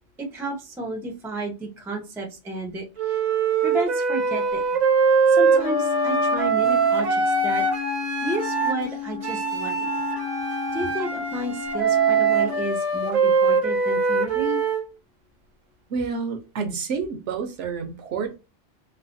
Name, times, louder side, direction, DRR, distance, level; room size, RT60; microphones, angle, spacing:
voice 1, 0.2-3.2 3.6-4.6 5.3-7.6 8.2-9.9 10.7-14.6, right 1 dB, 5° right, 0.4 m, -32 dB
Wind instrument woodwind instrument, 3.0-8.8 9.2-14.9, right 5 dB, 45° right, 0.6 m, -22 dB
Wind instrument woodwind instrument 2, 5.5-12.7, left 8 dB, 60° left, 0.6 m, -33 dB
voice 2, 15.9-18.4, right 5 dB, 70° right, 0.9 m, -29 dB
3.2 x 2.0 x 2.5 m
omnidirectional pair, 1.3 m